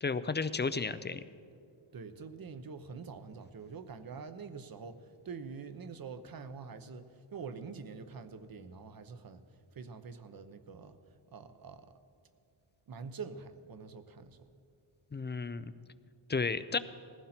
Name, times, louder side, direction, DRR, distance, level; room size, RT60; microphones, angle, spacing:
voice 1, 0.0-1.2 15.1-15.7 16.3-16.8, left 4 dB, 25° left, 13 dB, 0.4 m, -33 dB
voice 2, 1.9-9.4 9.7-11.9 12.9-14.5, right 5 dB, 45° right, 11 dB, 1.0 m, -46 dB
20.0 x 15.5 x 4.4 m, 2.3 s
wide cardioid pair, 130°, 47 cm